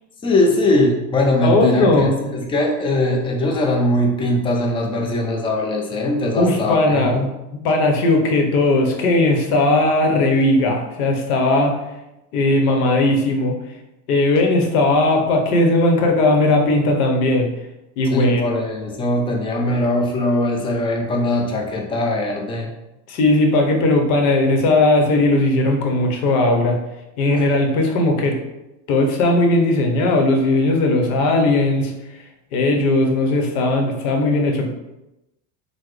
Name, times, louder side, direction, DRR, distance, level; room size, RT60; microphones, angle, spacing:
voice 1, 0.2-7.3 18.1-22.7 27.3-27.5, left 1 dB, 10° left, 1 dB, 0.4 m, -21 dB
voice 2, 1.4-2.2 6.4-7.3 7.6-11.7 12.3-13.5 14.1-17.5 18.0-18.4 23.1-26.8 27.2-28.4 28.9-31.9 32.5-34.7, left 2 dB, 70° left, 2 dB, 0.9 m, -17 dB
3.8 x 2.1 x 3.1 m, 0.95 s
supercardioid pair, 105°, 47 cm